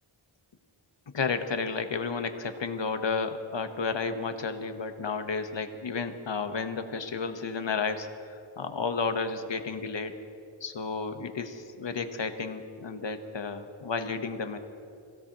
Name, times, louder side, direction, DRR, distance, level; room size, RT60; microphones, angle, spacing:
voice 1, 1.1-10.1 10.6-14.6, left 4 dB, 60° left, 8 dB, 1.2 m, -32 dB
27.0 x 16.5 x 3.0 m, 2.6 s
wide cardioid pair, 75°, 48 cm